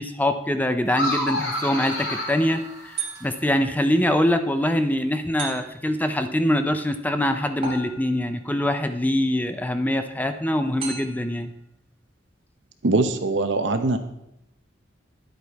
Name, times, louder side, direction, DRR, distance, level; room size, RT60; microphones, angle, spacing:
voice 1, 0.0-11.5, left 1 dB, 10° left, 8 dB, 0.5 m, -24 dB
sound 1, 0.9-3.4, left 1 dB, 70° left, 2.8 m, -29 dB
sound 2, 3.0-3.6 5.4-6.0 7.6-8.4 10.8-11.4, right 5 dB, 30° right, 3.0 m, -35 dB
voice 2, 12.8-14.0, right 2 dB, 70° right, 8 dB, 0.9 m, -22 dB
10.5 x 8.0 x 4.1 m, 0.82 s
head